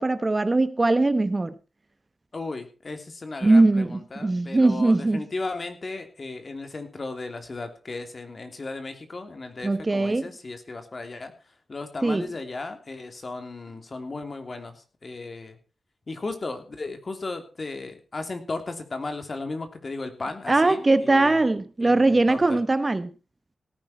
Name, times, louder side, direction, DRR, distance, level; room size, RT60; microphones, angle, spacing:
voice 1, 0.0-1.5 3.4-5.2 9.6-10.3 12.0-12.2 20.5-23.1, right 2 dB, 30° right, 1.1 m, -21 dB
voice 2, 2.3-15.6 16.1-21.4 21.8-22.6, left 3 dB, 45° left, 3.1 m, -35 dB
17.5 x 10.5 x 4.4 m
cardioid pair, 60°, 0 cm